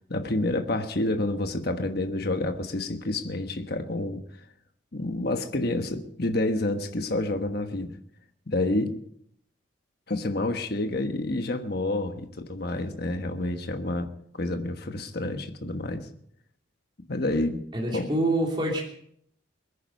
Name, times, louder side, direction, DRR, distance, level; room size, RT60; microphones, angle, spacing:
voice 1, 0.1-4.2 4.9-8.0 8.5-9.0 10.1-16.1 17.0-17.6 17.9-18.1, left 2 dB, 50° left, 6 dB, 1.3 m, -29 dB
voice 2, 17.7-18.8, right 1 dB, 25° right, -1 dB, 2.9 m, -26 dB
22.5 x 10.0 x 5.4 m, 0.68 s
head